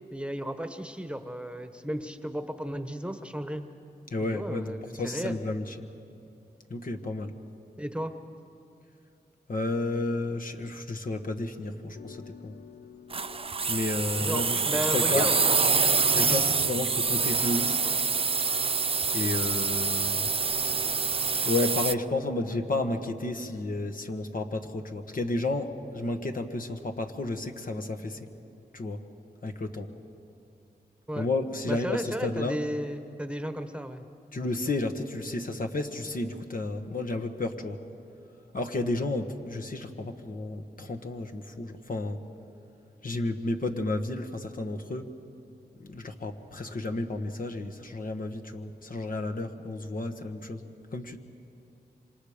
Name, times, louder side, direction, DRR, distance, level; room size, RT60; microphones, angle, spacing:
voice 1, 0.1-3.6 4.2-5.4 7.8-8.1 14.2-15.4 31.1-31.3 31.7-34.0, equal, 5° right, 8 dB, 1.2 m, -34 dB
voice 2, 4.1-5.9 6.7-7.3 9.5-12.5 13.7-15.3 16.1-17.8 19.1-20.3 21.4-28.3 28.7-29.0 29.4-29.9 31.2-32.6 34.3-37.8 38.5-42.2 43.0-45.1 45.8-50.6 50.9-51.2, left 2 dB, 55° left, 5 dB, 1.3 m, -32 dB
sound 1, 11.6-16.6, left 6 dB, 85° left, 0.7 m, -50 dB
sound 2, 13.1-21.9, right 5 dB, 35° right, 0.4 m, -26 dB
27.0 x 25.5 x 5.1 m, 2.7 s
wide cardioid pair, 70°, 17 cm